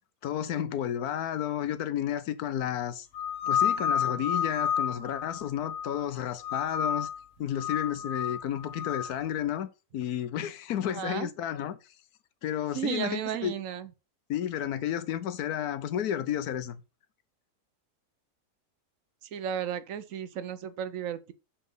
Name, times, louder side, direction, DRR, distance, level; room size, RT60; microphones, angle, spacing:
voice 1, 0.2-3.1 3.5-7.1 7.4-9.7 9.9-11.8 12.4-13.5 14.3-16.8, left 10 dB, 80° left, 1.2 m, -32 dB
sound 1, 3.1-6.0 6.4-7.2 7.5-9.1, left 8 dB, 55° left, 1.9 m, -30 dB
voice 2, 10.9-11.3 12.7-13.9 19.2-21.3, right 9 dB, 65° right, 1.0 m, -34 dB
5.7 x 4.2 x 5.4 m
omnidirectional pair, 1.6 m